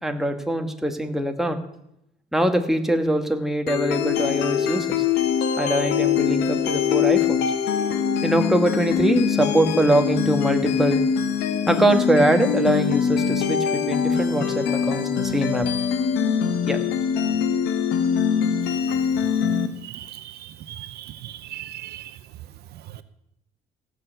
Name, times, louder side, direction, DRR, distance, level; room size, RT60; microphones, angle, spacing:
voice 1, 0.0-1.6 2.3-5.0 5.6-7.4 8.2-11.0 11.7-15.7 16.6-16.8, right 1 dB, ahead, 4 dB, 1.5 m, -22 dB
sound 1, 3.7-19.7, left 7 dB, 85° left, 1.3 m, -23 dB
voice 2, 19.9-20.3 20.7-22.1, right 12 dB, 75° right, 12 dB, 0.8 m, -37 dB
16.0 x 6.3 x 7.9 m, 0.80 s
cardioid pair, 110°, 17 cm